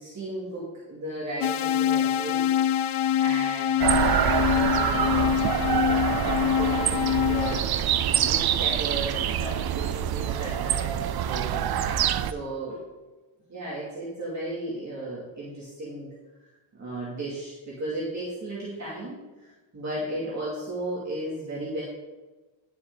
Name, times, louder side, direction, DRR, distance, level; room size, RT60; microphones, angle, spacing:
voice 1, 0.0-2.5 2.8-5.7 6.1-11.5 11.8-11.9 12.2-12.8 13.5-16.1 16.7-21.8, right 2 dB, 35° right, -7 dB, 2.6 m, -35 dB
sound 1, 1.4-7.6, left 10 dB, 85° left, 0.6 m, -25 dB
sound 2, 3.8-12.3, right 10 dB, 50° right, 0.5 m, -25 dB
11.5 x 7.2 x 3.9 m, 1.2 s
wide cardioid pair, 145°, 49 cm